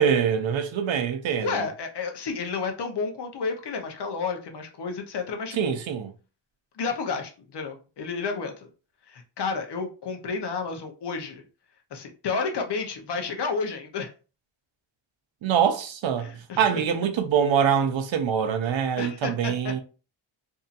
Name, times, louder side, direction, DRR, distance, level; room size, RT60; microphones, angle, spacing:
voice 1, 0.0-1.7 5.5-6.1 15.4-19.8, right 8 dB, 70° right, 0.6 m, -24 dB
voice 2, 1.4-5.8 6.8-8.7 9.1-11.4 11.9-14.1 16.2-16.8 19.0-19.7, left 4 dB, 60° left, 0.8 m, -31 dB
2.7 x 2.6 x 2.4 m
wide cardioid pair, 115°, 47 cm